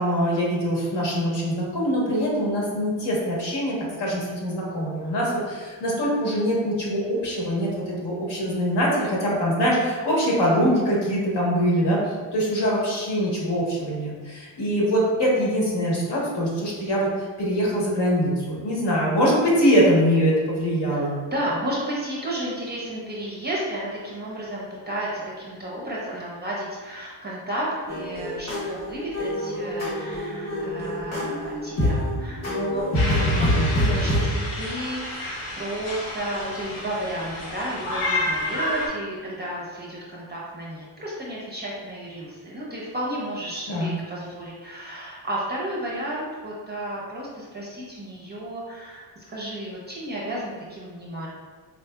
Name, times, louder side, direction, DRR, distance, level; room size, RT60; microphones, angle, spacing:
voice 1, 0.0-21.1 33.3-33.7 43.7-43.9, equal, 60° left, -4 dB, 1.1 m, -23 dB
voice 2, 20.9-51.3, right 1 dB, 20° right, -5 dB, 0.6 m, -32 dB
sound 1, 27.9-34.2, left 1 dB, 35° left, 0.8 m, -25 dB
sound 2, 32.9-38.9, left 1 dB, 85° left, 0.9 m, -30 dB
4.0 x 2.7 x 2.2 m, 1.5 s
wide cardioid pair, 130°, 47 cm